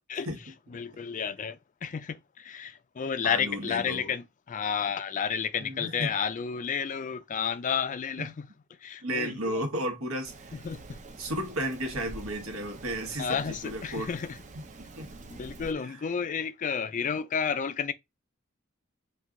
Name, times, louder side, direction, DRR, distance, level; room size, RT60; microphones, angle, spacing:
voice 1, 0.7-8.5 8.8-9.6 10.5-11.0 13.2-14.4 15.3-17.9, left 7 dB, 40° left, 0.4 m, -31 dB
voice 2, 3.2-4.1 5.6-6.1 8.2-8.3 9.0-10.6 11.2-14.1 14.5-15.1, equal, 80° right, 1.3 m, -33 dB
Rain, 10.2-15.7, right 3 dB, 35° right, 0.5 m, -46 dB
4.4 x 2.3 x 3.7 m
head